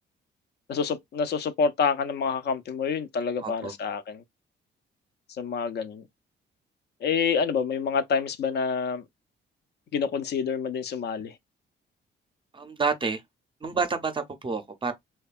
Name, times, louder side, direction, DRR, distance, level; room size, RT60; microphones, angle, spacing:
voice 1, 0.7-4.2 5.4-6.0 7.0-9.0 9.9-11.3, left 6 dB, 55° left, 0.4 m, -27 dB
voice 2, 3.4-3.7 12.5-13.2 13.6-14.9, right 4 dB, 25° right, 0.5 m, -29 dB
2.7 x 2.2 x 2.3 m
cardioid pair, 90°, 20 cm